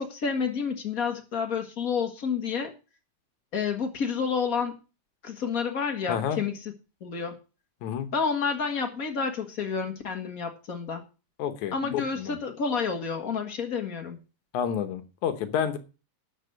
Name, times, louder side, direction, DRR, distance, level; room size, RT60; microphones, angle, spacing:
voice 1, 0.0-2.7 3.5-4.8 5.2-6.7 7.0-7.3 8.1-11.0 11.7-14.2, left 6 dB, 40° left, 5 dB, 1.2 m, -29 dB
voice 2, 6.1-6.4 7.8-8.1 11.4-12.4 14.5-15.8, left 8 dB, 70° left, 9 dB, 2.4 m, -29 dB
12.0 x 5.4 x 8.0 m, 0.33 s
omnidirectional pair, 3.7 m